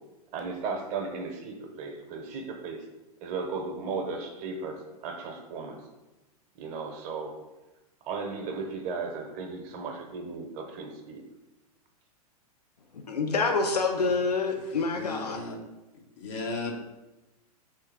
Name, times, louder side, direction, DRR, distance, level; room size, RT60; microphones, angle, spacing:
voice 1, 0.3-2.8 3.2-5.8 6.6-7.3 8.1-11.2, right 4 dB, 35° right, 3 dB, 0.8 m, -35 dB
voice 2, 12.9-15.4, left 4 dB, 85° left, 4 dB, 0.5 m, -27 dB
voice 3, 14.9-15.6 16.2-16.7, left 3 dB, 50° left, 1 dB, 1.2 m, -35 dB
3.5 x 3.2 x 4.6 m, 1.1 s
figure-of-eight pair, 105°, 20 cm